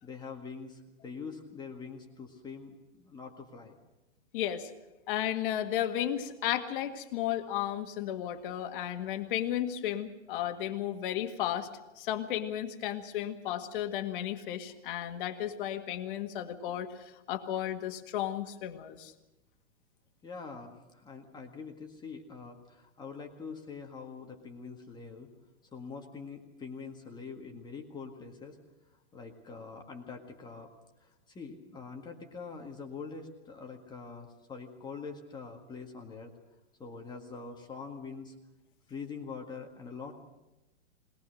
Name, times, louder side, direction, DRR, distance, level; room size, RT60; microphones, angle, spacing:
voice 1, 0.0-3.8 20.2-25.3 25.7-28.6 29.1-30.7 31.3-36.3 36.8-38.3 38.9-40.1, left 5 dB, 10° left, 2 dB, 1.7 m, -44 dB
voice 2, 4.3-4.7 5.1-11.7 12.0-19.1, left 11 dB, 45° left, 5 dB, 1.9 m, -34 dB
21.0 x 19.5 x 6.5 m, 1.0 s
hypercardioid pair, 145°, 36 cm